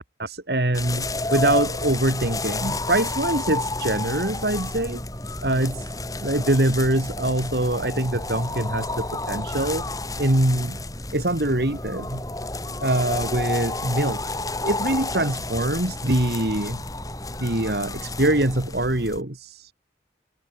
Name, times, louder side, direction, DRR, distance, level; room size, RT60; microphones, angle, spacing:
voice 1, 0.0-5.0 5.4-5.9 6.2-9.8 10.2-10.8 11.1-12.2 12.8-16.8 17.4-19.7, right 1 dB, 60° right, 2.4 m, -24 dB
sound 1, 0.7-19.2, left 2 dB, 20° left, 4.0 m, -30 dB
head